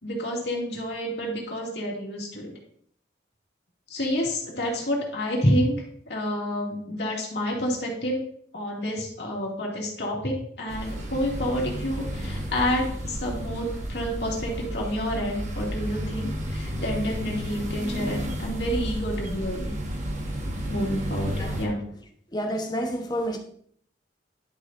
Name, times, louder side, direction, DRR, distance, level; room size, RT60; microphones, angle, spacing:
voice 1, 0.0-2.5 3.9-8.2 8.5-19.7 20.7-21.8, equal, 60° left, -2 dB, 2.5 m, -29 dB
sound 1, 10.7-21.7, equal, 40° right, 1.4 m, -32 dB
voice 2, 22.3-23.4, equal, 20° left, 2 dB, 1.1 m, -29 dB
11.0 x 6.6 x 2.6 m, 0.64 s
head